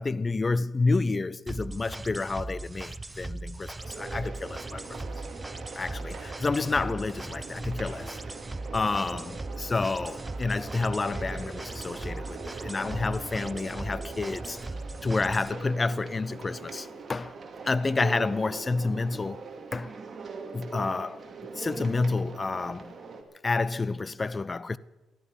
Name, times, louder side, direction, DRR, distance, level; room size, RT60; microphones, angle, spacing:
voice 1, 0.0-4.8 5.8-8.2 8.7-14.6 15.0-17.4 17.6-19.4 19.7-19.9 20.5-23.0 23.4-24.8, left 3 dB, 25° left, 0.6 m, -29 dB
sound 1, 1.5-15.5, right 2 dB, 15° right, 0.7 m, -39 dB
sound 2, 3.8-23.2, right 4 dB, 40° right, 2.6 m, -42 dB
19.0 x 13.5 x 5.6 m
cardioid pair, 90°, 0 cm